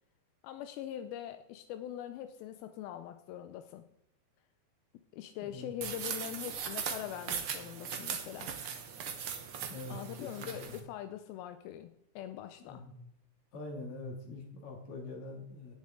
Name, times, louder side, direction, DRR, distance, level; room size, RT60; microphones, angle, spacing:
voice 1, 0.4-3.9 4.9-8.5 9.9-12.8, left 11 dB, 85° left, 9 dB, 2.5 m, -43 dB
voice 2, 5.4-5.7 9.7-10.8 12.6-12.9 13.5-15.7, left 2 dB, 50° left, 0 dB, 3.5 m, -44 dB
sound 1, 5.8-10.8, right 7 dB, 80° right, 1.2 m, -39 dB
18.0 x 7.2 x 3.7 m, 0.79 s
omnidirectional pair, 4.2 m